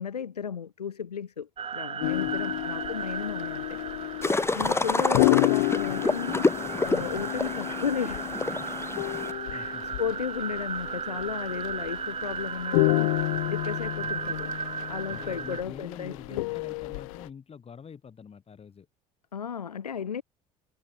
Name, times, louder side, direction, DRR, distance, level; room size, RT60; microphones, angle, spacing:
voice 1, 0.0-3.8 4.5-8.2 9.5-13.1 13.5-14.5 14.9-16.4 19.3-20.2, left 7 dB, 80° left, 1.6 m, -34 dB
sound 1, 1.6-15.6, right 6 dB, 30° right, 5.3 m, -36 dB
sound 2, 2.0-17.3, left 25 dB, 60° left, 0.9 m, -30 dB
voice 2, 2.2-2.6 4.6-4.9 9.5-9.9 15.1-18.9, left 6 dB, 30° left, 8.0 m, -46 dB
sound 3, 4.2-9.3, left 3 dB, 15° left, 2.3 m, -28 dB
figure-of-eight pair, 65°, 20 cm